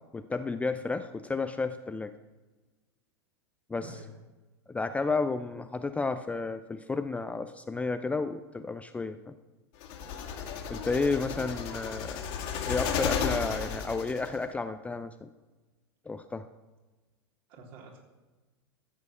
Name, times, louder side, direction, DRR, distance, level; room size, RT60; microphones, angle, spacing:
voice 1, 0.1-2.1 3.7-3.9 4.7-9.3 10.7-12.2 12.7-15.3 16.1-16.5, left 3 dB, 10° left, 9 dB, 0.5 m, -32 dB
voice 2, 3.8-4.1 11.1-11.4 17.5-18.0, right 1 dB, 50° right, -1 dB, 3.4 m, -47 dB
sound 1, 9.8-14.4, left 7 dB, 50° left, 2.1 m, -33 dB
13.5 x 8.3 x 6.0 m, 1.2 s
figure-of-eight pair, 90°, 14 cm